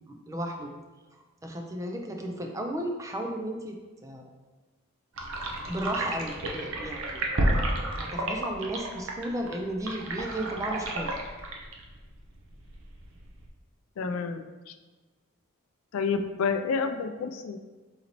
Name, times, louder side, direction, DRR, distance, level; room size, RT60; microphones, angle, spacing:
voice 1, 0.1-0.7 1.4-4.3 5.7-11.1, right 1 dB, 15° right, 3 dB, 0.3 m, -34 dB
sound 1, 5.2-13.5, right 1 dB, 70° right, 0.6 m, -32 dB
voice 2, 14.0-14.7 15.9-17.6, left 5 dB, 80° left, 8 dB, 0.3 m, -29 dB
4.0 x 3.9 x 2.9 m, 1.2 s
head